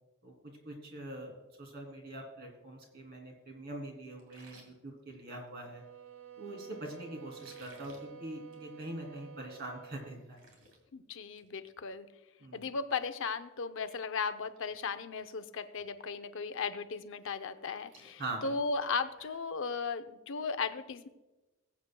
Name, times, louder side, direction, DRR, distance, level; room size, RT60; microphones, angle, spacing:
voice 1, 0.2-5.8 6.4-10.4 12.4-12.6 18.2-18.5, right 1 dB, 50° right, 1 dB, 2.7 m, -43 dB
sound 1, 4.2-5.8 7.3-8.0 8.4-8.7 9.0-9.1 9.6-9.7 10.0-10.8 11.2-11.5 11.8-11.9 13.7-13.8 14.3-14.6 14.9-15.3 15.8-15.9 17.2-19.5, right 2 dB, 90° right, 2.5 m, -60 dB
sound 2, 5.5-10.3, right 9 dB, 70° right, 1.3 m, -51 dB
voice 2, 10.9-12.1 12.5-21.1, left 5 dB, 65° left, 10 dB, 0.6 m, -36 dB
21.0 x 8.2 x 2.2 m, 1.1 s
head